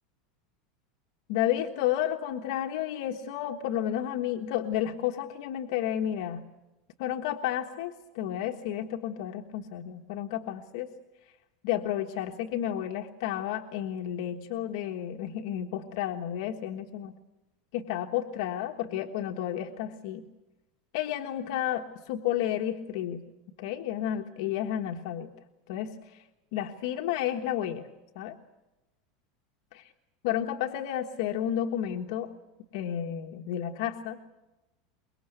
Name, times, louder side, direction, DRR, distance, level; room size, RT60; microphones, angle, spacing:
voice 1, 1.3-6.4 7.0-10.9 11.6-17.1 17.7-20.2 20.9-23.2 23.6-25.3 25.7-26.2 26.5-27.9 28.1-28.3 30.2-32.3 32.7-34.2, left 11 dB, 55° left, 3 dB, 1.4 m, -31 dB
24.5 x 22.5 x 8.0 m, 1.1 s
supercardioid pair, 175°, 3 cm